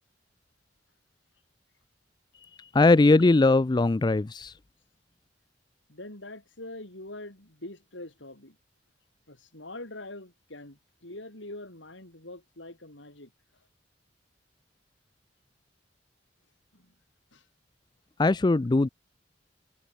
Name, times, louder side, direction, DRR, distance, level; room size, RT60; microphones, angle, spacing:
voice 1, 2.7-4.5 18.2-18.9, left 2 dB, 25° left, 0.4 m, -20 dB
voice 2, 5.9-8.6 9.3-13.3 16.7-16.9 17.3-17.4, left 2 dB, 90° left, 7.0 m, -44 dB
head